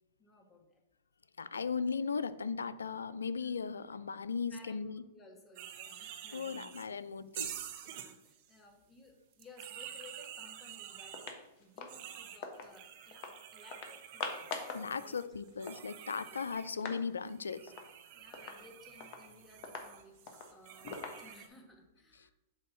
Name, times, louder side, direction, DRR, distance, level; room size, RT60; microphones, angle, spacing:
voice 1, 0.2-0.8 3.4-3.5 4.4-7.1 7.8-15.6 16.1-16.5 18.1-22.3, left 1 dB, 20° left, 3 dB, 1.4 m, -59 dB
voice 2, 1.4-5.0 6.3-7.5 14.7-17.7, left 5 dB, 90° left, 16 dB, 0.3 m, -37 dB
sound 1, 5.5-6.9 7.3-8.5 9.3-11.3 11.9-16.7 17.2-21.5, right 10 dB, 55° right, 0.7 m, -48 dB
sound 2, 10.6-10.7 11.0-12.7 13.1-13.4 13.7-14.9 15.2-15.3 15.5-17.0 17.3-17.4 17.7-17.9 18.3-21.6, left 4 dB, 45° left, 1.1 m, -44 dB
7.5 x 2.8 x 5.7 m, 0.89 s
hypercardioid pair, 110°, 0 cm